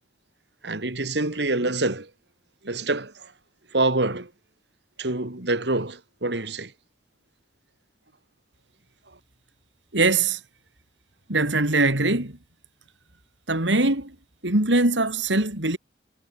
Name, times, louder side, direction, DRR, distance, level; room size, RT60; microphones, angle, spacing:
voice 1, 0.6-2.1 2.6-3.3 3.7-4.3 5.0-6.7, right 2 dB, 70° right, 2.5 m, -26 dB
voice 2, 9.9-10.4 11.3-12.4 13.5-14.1 14.4-15.8, right 2 dB, 90° right, 4.5 m, -22 dB
head